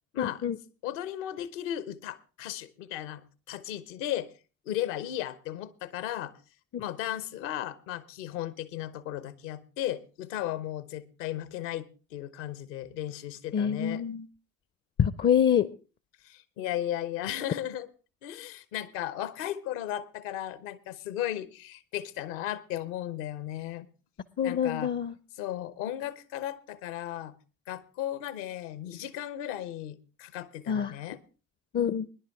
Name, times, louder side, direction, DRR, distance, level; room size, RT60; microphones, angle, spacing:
voice 1, 0.2-0.6 13.5-14.3 15.0-15.7 24.4-25.1 30.7-31.0 31.7-32.1, left 8 dB, 30° left, 18 dB, 0.5 m, -26 dB
voice 2, 0.8-4.3 4.7-6.4 6.8-14.0 16.2-17.9 18.2-23.9 24.4-24.9 25.4-27.3 27.7-31.2, left 12 dB, 70° left, 17 dB, 0.9 m, -35 dB
20.0 x 10.5 x 3.5 m, 0.34 s
figure-of-eight pair, 50°, 40 cm